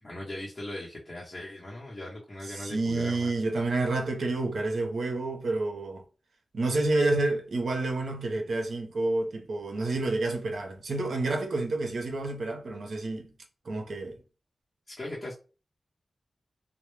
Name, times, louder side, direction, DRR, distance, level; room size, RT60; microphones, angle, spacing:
voice 1, 0.0-3.3 14.9-15.3, left 1 dB, 30° left, 0.8 m, -39 dB
voice 2, 2.5-6.0 6.5-13.3 13.6-14.2, right 2 dB, 75° right, 0.6 m, -29 dB
2.1 x 2.0 x 3.1 m
cardioid pair, 65°, 0 cm